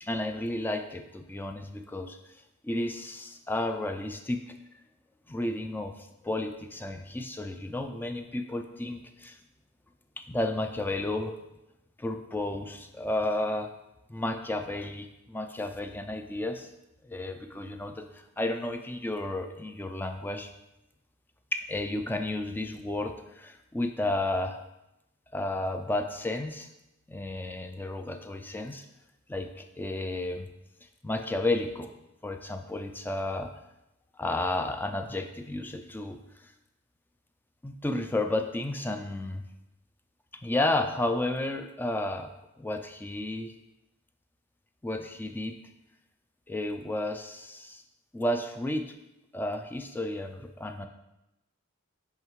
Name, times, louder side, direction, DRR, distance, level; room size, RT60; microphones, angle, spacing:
voice 1, 0.0-2.2 2.6-4.5 5.3-9.4 10.2-11.3 12.0-13.7 14.1-16.7 17.0-20.5 21.5-24.6 25.3-26.7 27.1-28.9 29.3-30.5 31.0-31.9 32.2-33.5 34.2-36.2 36.4-36.5 37.6-39.5 40.4-42.3 42.6-43.5 44.8-45.6 46.5-47.8 48.1-48.9 49.3-50.9, left 2 dB, 10° left, 6 dB, 0.3 m, -32 dB
5.6 x 5.5 x 3.1 m, 0.93 s
head